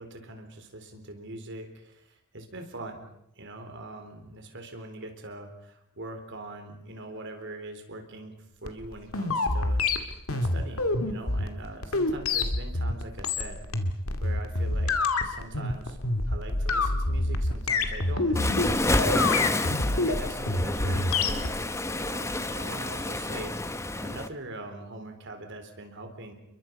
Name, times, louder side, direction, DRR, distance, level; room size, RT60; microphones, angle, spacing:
voice 1, 0.0-3.1 3.4-9.8 10.3-13.6 14.2-15.0 15.2-16.0 16.3-21.6 21.9-26.3, right 2 dB, 60° right, 5 dB, 4.0 m, -42 dB
sound 1, 8.6-21.5, left 2 dB, 80° left, 2.3 m, -27 dB
Waves surf, 18.4-24.3, left 2 dB, 15° left, 1.0 m, -29 dB
29.5 x 22.5 x 5.4 m, 0.80 s
head